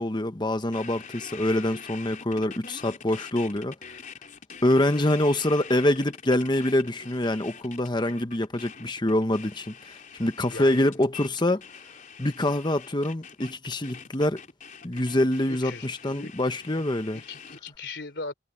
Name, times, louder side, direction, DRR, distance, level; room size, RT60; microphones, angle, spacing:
voice 1, 0.0-3.7 4.6-11.6 12.2-14.4 14.8-17.2, left 1 dB, 25° left, 1.1 m, -25 dB
sound 1, 0.7-17.8, left 6 dB, 50° left, 4.4 m, -44 dB
voice 2, 10.5-11.0 15.5-16.3 16.6-16.8 17.1-18.3, left 3 dB, 75° left, 3.8 m, -39 dB
head